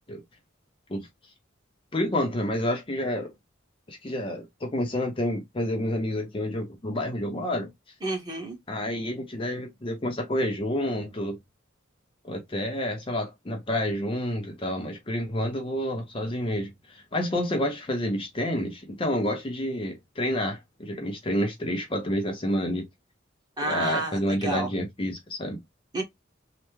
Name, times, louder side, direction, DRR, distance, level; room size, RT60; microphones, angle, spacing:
voice 1, 1.9-3.3 3.9-7.7 8.7-11.4 12.2-22.9 23.6-25.6, left 1 dB, 30° left, 0.6 m, -29 dB
voice 2, 8.0-8.6 23.6-24.7 25.9-26.0, right 2 dB, 20° right, 1.2 m, -30 dB
3.3 x 2.1 x 3.0 m
head